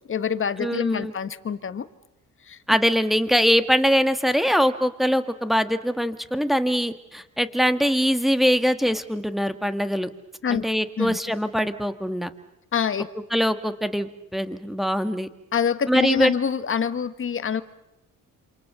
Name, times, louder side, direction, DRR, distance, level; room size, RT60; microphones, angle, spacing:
voice 1, 0.1-1.9 2.4-2.6 10.4-10.6 11.0-11.2 12.7-13.1 15.5-17.6, left 7 dB, 45° left, 12 dB, 1.6 m, -25 dB
voice 2, 0.6-1.1 2.7-10.1 10.5-12.3 13.3-15.3 15.9-16.3, equal, ahead, 10 dB, 1.9 m, -22 dB
27.5 x 27.0 x 6.8 m, 0.90 s
cardioid pair, 90°, 30 cm